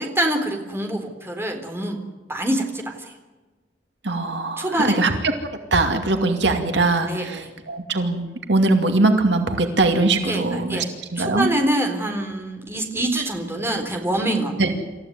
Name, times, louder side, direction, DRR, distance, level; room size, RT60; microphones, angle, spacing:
voice 1, 0.0-2.0 2.3-3.0 4.6-5.1 7.1-7.5 10.2-10.9 11.2-14.6, right 1 dB, 15° right, 3 dB, 3.9 m, -25 dB
voice 2, 4.0-5.1 5.7-10.8 11.1-11.6 14.6-14.7, right 2 dB, 70° right, 5 dB, 2.5 m, -21 dB
27.5 x 15.5 x 9.5 m, 1.2 s
head